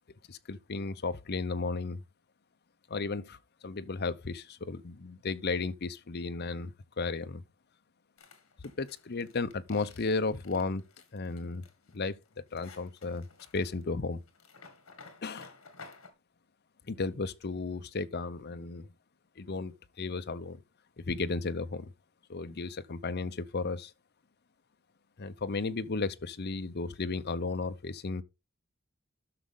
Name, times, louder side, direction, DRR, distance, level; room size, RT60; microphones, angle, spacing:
voice 1, 0.3-2.0 2.9-3.4 3.6-7.4 8.8-10.8 11.1-11.7 11.9-13.3 13.5-14.2 15.2-15.5 16.9-18.9 19.4-20.6 21.0-21.9 22.3-23.9 25.2-28.2, left 3 dB, 50° left, 0.7 m, -34 dB
sound 1, 8.2-16.1, left 4 dB, 70° left, 2.1 m, -54 dB
12.0 x 6.3 x 3.7 m
head